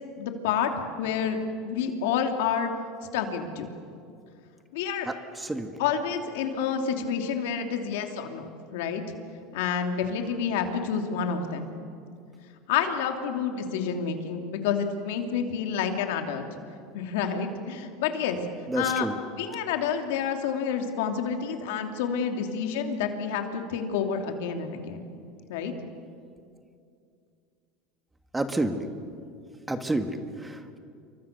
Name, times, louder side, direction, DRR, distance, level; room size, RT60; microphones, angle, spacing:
voice 1, 0.2-1.4 1.6-2.7 3.1-3.7 4.7-5.1 5.8-9.0 9.5-11.7 12.7-16.4 16.9-18.4 18.7-25.0 25.5-25.7, left 7 dB, 80° left, 5 dB, 2.9 m, -29 dB
voice 2, 5.4-5.7 18.7-19.1 28.3-28.9 29.7-30.8, right 2 dB, 10° right, 8 dB, 1.7 m, -29 dB
28.0 x 24.0 x 6.8 m, 2.4 s
supercardioid pair, 115°, 0 cm